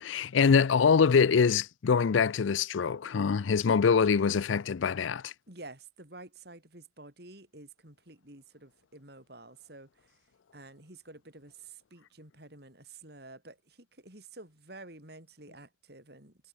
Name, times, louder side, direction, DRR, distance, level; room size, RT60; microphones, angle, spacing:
voice 1, 0.0-5.3, left 6 dB, 80° left, 0.5 m, -24 dB
voice 2, 5.5-10.2 10.5-16.5, right 2 dB, 55° right, 5.4 m, -50 dB
head